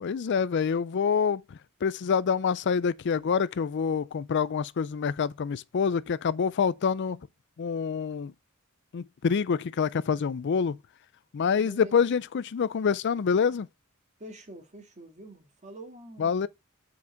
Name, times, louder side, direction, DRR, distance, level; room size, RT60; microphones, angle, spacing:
voice 1, 0.0-7.2 7.6-8.3 8.9-10.8 11.3-13.7 16.2-16.5, left 6 dB, 55° left, 0.4 m, -26 dB
voice 2, 11.4-12.2 14.2-16.5, right 1 dB, 35° right, 2.1 m, -46 dB
7.7 x 5.8 x 4.4 m
head